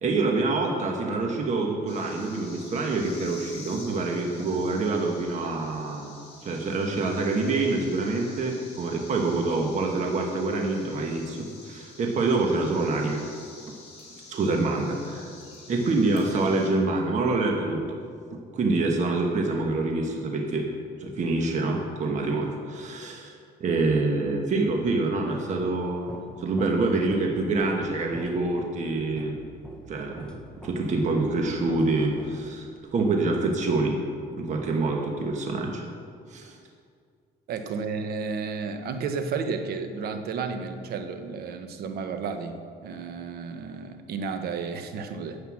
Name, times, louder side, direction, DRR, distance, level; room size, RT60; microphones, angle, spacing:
voice 1, 0.0-13.2 14.3-15.3 15.7-18.0 18.5-20.7 21.0-23.3 23.6-29.3 29.9-30.4 30.6-34.0 34.3-35.8 36.3-36.5, right 3 dB, 45° right, 1 dB, 1.3 m, -26 dB
sound 1, 1.9-16.7, left 3 dB, 35° left, 3.1 m, -48 dB
sound 2, 24.8-32.9, equal, 5° left, 1.0 m, -46 dB
voice 2, 37.5-45.4, right 5 dB, 65° right, 7 dB, 1.0 m, -32 dB
9.6 x 8.0 x 6.3 m, 2.2 s
cardioid pair, 110°, 17 cm